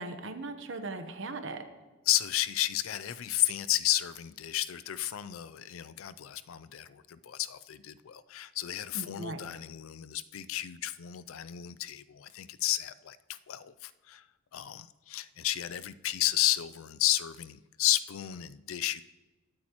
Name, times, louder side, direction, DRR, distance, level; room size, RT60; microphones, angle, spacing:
voice 1, 0.0-1.7 8.9-9.4, right 2 dB, 60° right, 8 dB, 1.0 m, -38 dB
voice 2, 2.1-14.2 14.5-19.0, left 14 dB, 80° left, 15 dB, 0.4 m, -32 dB
21.5 x 8.4 x 3.0 m, 1.2 s
head